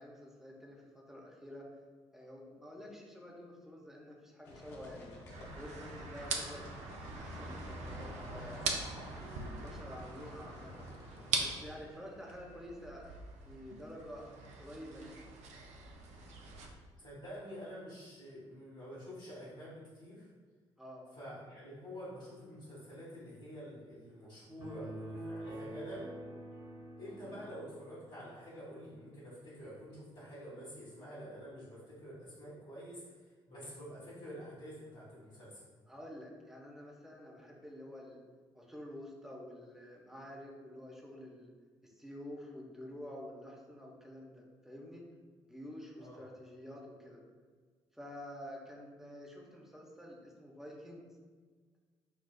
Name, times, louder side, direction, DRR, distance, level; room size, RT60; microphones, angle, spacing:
voice 1, 0.0-1.7 2.1-5.1 5.6-6.7 7.1-8.7 9.1-10.9 11.4-13.2 13.5-14.3 14.6-15.2 20.8-21.1 27.2-27.4 35.9-38.2 38.5-41.5 41.8-45.1 45.5-47.2 47.9-51.1, equal, ahead, -3 dB, 0.9 m, -49 dB
sound 1, 4.4-11.8, left 1 dB, 75° left, 0.6 m, -51 dB
sound 2, 5.3-16.7, right 3 dB, 55° right, 0.5 m, -42 dB
voice 2, 17.0-20.3 21.1-26.1 27.0-33.1 33.5-35.6 46.0-46.2, equal, 55° left, -12 dB, 1.5 m, -48 dB
sound 3, 24.6-28.1, right 1 dB, 30° right, 1.2 m, -46 dB
5.7 x 2.2 x 2.3 m, 1.5 s
figure-of-eight pair, 45°, 14 cm